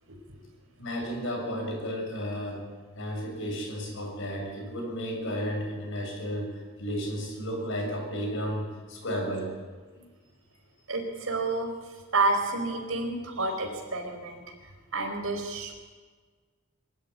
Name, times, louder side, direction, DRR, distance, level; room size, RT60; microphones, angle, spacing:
voice 1, 0.1-0.4 10.9-11.7 12.1-14.4 14.9-15.7, right 3 dB, 80° right, 3 dB, 4.5 m, -29 dB
voice 2, 0.8-2.7 2.9-9.5, equal, 65° left, 1 dB, 6.8 m, -33 dB
22.5 x 13.0 x 9.7 m, 1.4 s
head